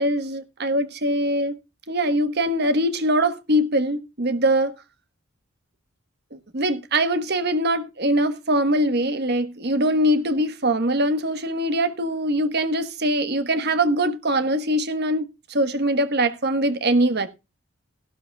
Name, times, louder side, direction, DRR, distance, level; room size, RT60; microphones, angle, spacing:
voice 1, 0.0-1.6 1.9-4.7 6.3-17.3, right 1 dB, 50° right, 1.3 m, -22 dB
16.0 x 12.0 x 2.3 m
head